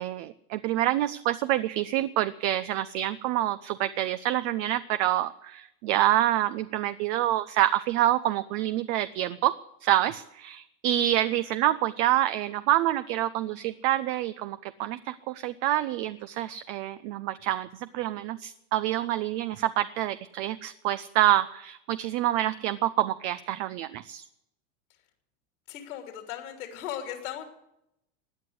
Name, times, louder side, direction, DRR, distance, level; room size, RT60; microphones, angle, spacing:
voice 1, 0.0-24.2, right 13 dB, 55° right, 13 dB, 0.7 m, -27 dB
voice 2, 25.7-27.4, left 10 dB, 85° left, 3 dB, 3.3 m, -37 dB
17.0 x 9.9 x 8.0 m, 0.81 s
supercardioid pair, 120°, 41 cm